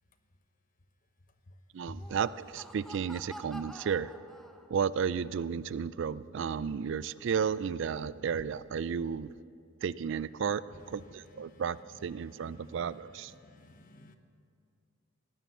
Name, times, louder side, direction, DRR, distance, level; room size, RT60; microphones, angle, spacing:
voice 1, 1.7-4.1 4.7-9.3 9.8-13.3, right 7 dB, 65° right, 18 dB, 0.4 m, -33 dB
Laughter, 2.0-5.0, equal, ahead, 0.7 m, -49 dB
voice 2, 13.4-14.2, left 1 dB, 40° left, 8 dB, 1.0 m, -50 dB
17.0 x 11.0 x 7.2 m, 2.4 s
head